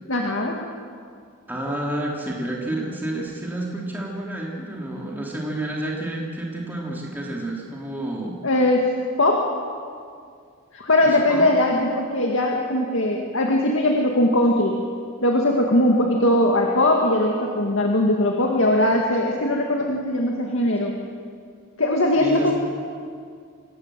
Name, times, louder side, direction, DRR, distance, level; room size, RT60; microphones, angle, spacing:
voice 1, 0.1-0.6 8.4-8.9 9.2-9.5 10.7-14.8 15.2-21.0 21.8-22.5, left 1 dB, 65° left, 0 dB, 2.2 m, -20 dB
voice 2, 1.5-8.4 11.0-11.5 22.1-22.5, right 1 dB, 10° right, -3 dB, 2.8 m, -29 dB
25.5 x 19.0 x 7.7 m, 2.2 s
head